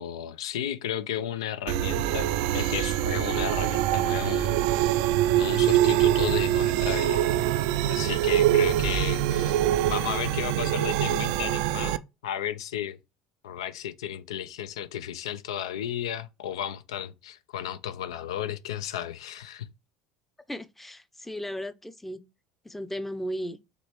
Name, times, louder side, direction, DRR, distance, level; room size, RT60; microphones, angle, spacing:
voice 1, 0.0-4.8 5.3-7.3 7.9-9.6 9.9-13.0 13.4-19.7, left 10 dB, 85° left, 0.4 m, -33 dB
sound 1, 1.7-12.0, right 13 dB, 70° right, 0.3 m, -24 dB
voice 2, 20.5-22.2 22.6-23.6, equal, 5° left, 0.5 m, -35 dB
5.1 x 3.1 x 3.0 m
hypercardioid pair, 85°, 3 cm